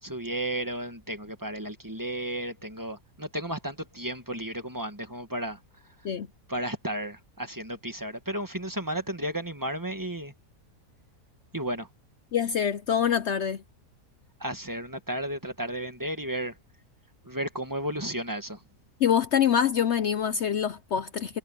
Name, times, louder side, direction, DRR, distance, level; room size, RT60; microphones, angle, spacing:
voice 1, 0.0-5.6 6.5-10.3 11.5-11.9 14.4-16.6 17.2-18.6, right 1 dB, 15° right, 1.5 m, -33 dB
voice 2, 12.3-13.6 19.0-21.4, left 8 dB, 60° left, 0.7 m, -25 dB
omnidirectional pair, 1.7 m